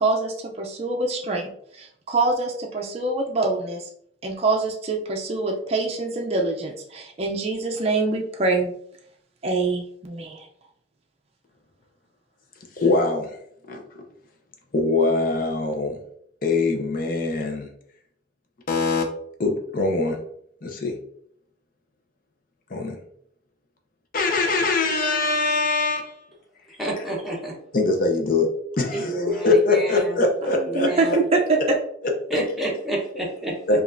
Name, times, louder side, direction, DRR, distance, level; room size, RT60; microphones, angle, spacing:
voice 1, 0.0-1.5 2.1-3.8 4.2-8.7 9.4-10.3 30.4-31.8, right 3 dB, 35° right, 1 dB, 0.5 m, -24 dB
voice 2, 12.8-13.3 13.7-13.8 14.7-16.0 16.4-17.7 18.7-19.0 19.4-20.2 20.6-20.9 22.7-23.0 24.1-26.1 27.7-28.5 28.8-30.9 33.7-33.8, left 3 dB, 45° left, 3 dB, 0.6 m, -22 dB
voice 3, 26.8-27.5 28.9-30.2 30.7-31.2 32.3-33.8, right 1 dB, ahead, -5 dB, 0.9 m, -29 dB
5.0 x 2.5 x 2.6 m, 0.68 s
head